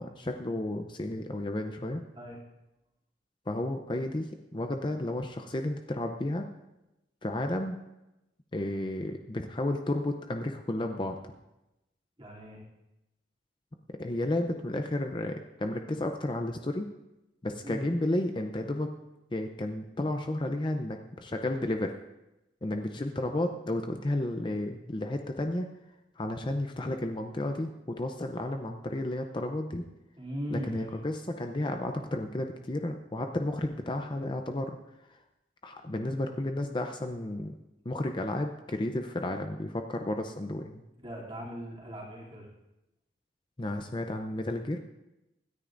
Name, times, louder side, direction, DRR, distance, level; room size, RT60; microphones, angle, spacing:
voice 1, 0.0-2.0 3.5-6.5 7.2-7.8 8.5-11.3 14.0-16.9 17.4-18.9 19.3-21.9 22.6-25.7 26.2-29.8 30.5-34.8 35.1-35.2 35.6-37.6 37.8-40.8 43.6-44.8, left 1 dB, 25° left, 5 dB, 0.6 m, -32 dB
voice 2, 12.2-12.6 17.6-17.8 30.2-31.0 41.0-42.5, equal, 30° right, -3 dB, 2.8 m, -39 dB
25.5 x 10.0 x 2.6 m, 0.95 s
head